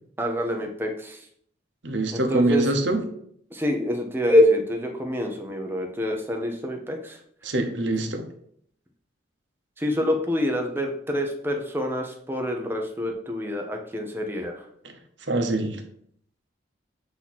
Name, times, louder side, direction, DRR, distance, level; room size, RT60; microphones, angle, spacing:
voice 1, 0.2-1.3 2.1-2.6 3.5-7.2 9.8-14.7, left 1 dB, 10° right, 3 dB, 0.7 m, -26 dB
voice 2, 1.8-3.0 7.4-8.3 14.8-14.9 15.2-15.8, right 1 dB, 70° right, 5 dB, 0.9 m, -24 dB
8.0 x 2.9 x 4.1 m, 0.67 s
head